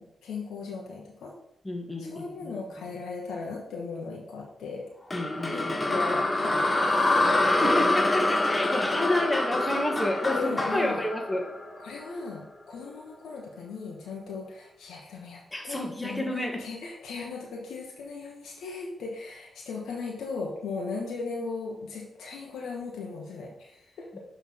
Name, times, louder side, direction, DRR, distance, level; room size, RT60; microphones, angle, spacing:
voice 1, 0.0-1.3 2.0-4.9 5.5-7.5 10.0-11.0 11.8-24.1, left 4 dB, 80° left, -2 dB, 1.1 m, -38 dB
voice 2, 1.6-2.6 5.1-6.0 7.6-11.4 15.5-16.7 24.1-24.2, left 1 dB, 15° left, 1 dB, 1.8 m, -30 dB
sound 1, 5.1-12.3, left 2 dB, 30° left, 1.2 m, -26 dB
5.8 x 3.5 x 6.0 m, 0.76 s
supercardioid pair, 45°, 0 cm